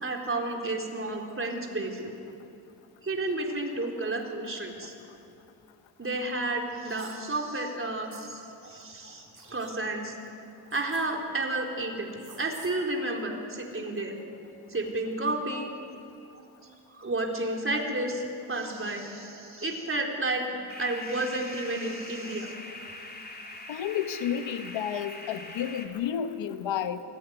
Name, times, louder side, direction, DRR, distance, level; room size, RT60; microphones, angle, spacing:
voice 1, 0.0-2.1 3.0-4.9 6.0-10.2 10.7-14.2 14.7-15.7 16.9-18.2 18.5-20.5 20.8-22.5, right 2 dB, 30° right, 1 dB, 4.2 m, -31 dB
sound 1, 6.9-7.2 8.1-8.2 9.4-9.7 10.7-11.0 12.2-12.7, right 4 dB, 45° right, 6.6 m, -49 dB
sound 2, 20.7-25.9, left 2 dB, 20° left, 3.6 m, -43 dB
voice 2, 23.7-27.0, left 9 dB, 75° left, 10 dB, 1.3 m, -31 dB
22.5 x 15.5 x 9.6 m, 2.7 s
cardioid pair, 70°, 45 cm